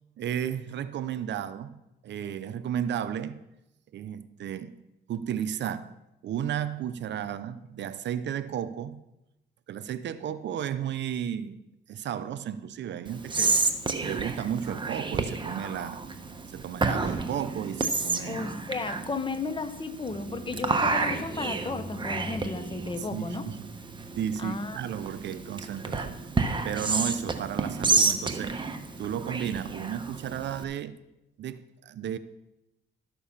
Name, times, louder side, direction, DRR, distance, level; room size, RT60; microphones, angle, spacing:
voice 1, 0.2-1.8 2.0-3.4 3.9-4.7 5.1-5.9 6.2-9.0 9.7-11.6 11.9-13.6 14.0-16.0 16.5-18.4 23.0-23.7 24.1-26.2 26.6-28.6 29.0-31.0 31.4-32.2, right 9 dB, 65° right, 0.7 m, -33 dB
Whispering, 13.1-30.6, right 3 dB, 25° right, 1.1 m, -30 dB
voice 2, 18.2-23.5 24.4-24.8, left 3 dB, 25° left, 1.0 m, -34 dB
12.5 x 7.0 x 5.6 m
cardioid pair, 90°, 20 cm